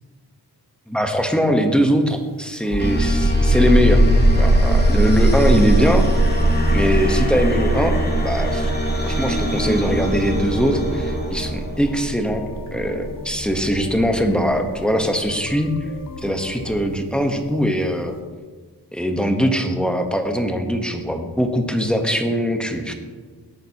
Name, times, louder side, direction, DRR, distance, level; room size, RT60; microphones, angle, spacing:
voice 1, 0.9-4.0 4.4-6.1 6.7-8.7 9.0-15.7 16.2-18.1 18.9-22.9, equal, ahead, 4 dB, 1.1 m, -21 dB
sound 1, 2.6-16.0, right 1 dB, 55° right, 1.8 m, -20 dB
sound 2, 2.8-12.2, equal, 25° left, 1.8 m, -24 dB
sound 3, 4.1-16.9, left 1 dB, 65° left, 1.5 m, -37 dB
17.5 x 8.9 x 2.9 m, 1.5 s
wide cardioid pair, 105°, 40 cm